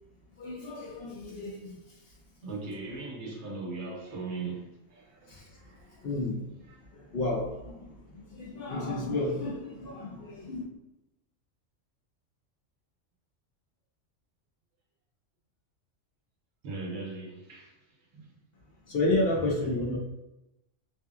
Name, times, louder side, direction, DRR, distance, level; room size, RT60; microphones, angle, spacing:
voice 1, 0.4-1.8 5.3-5.5 6.0-6.4 6.9-10.6 18.9-20.0, left 2 dB, 55° left, 0.8 m, -31 dB
voice 2, 2.4-6.1 6.4-6.9 16.6-18.3, right 3 dB, 65° right, 0.9 m, -40 dB
2.8 x 2.5 x 2.3 m
omnidirectional pair, 1.3 m